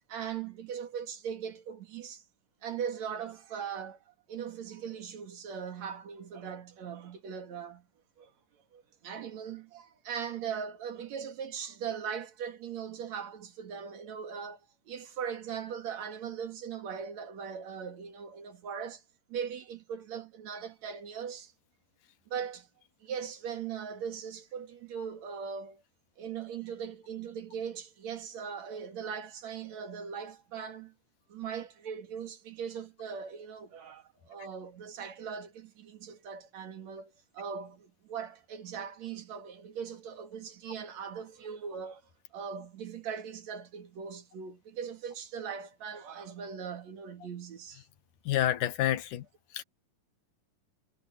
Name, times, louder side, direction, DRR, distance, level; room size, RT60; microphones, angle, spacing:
voice 1, 0.1-2.2 2.6-7.8 8.2-8.3 8.7-19.0 19.3-21.5 22.3-22.7 23.0-25.8 26.2-30.9 31.3-42.0 42.3-47.8, right 7 dB, 60° right, 3.2 m, -40 dB
voice 2, 48.3-49.3 49.5-49.6, left 13 dB, 75° left, 2.8 m, -28 dB
omnidirectional pair, 3.7 m